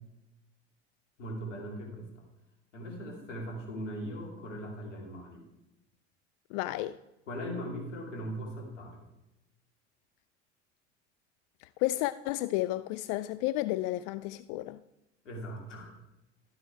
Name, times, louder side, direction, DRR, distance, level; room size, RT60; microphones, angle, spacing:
voice 1, 1.2-2.2 2.7-5.4 7.3-9.0 15.2-16.0, equal, 85° left, 2.7 m, -39 dB
voice 2, 6.5-7.0 11.6-14.8, left 16 dB, 55° left, 0.5 m, -32 dB
12.5 x 7.8 x 4.6 m
hypercardioid pair, 70°, 36 cm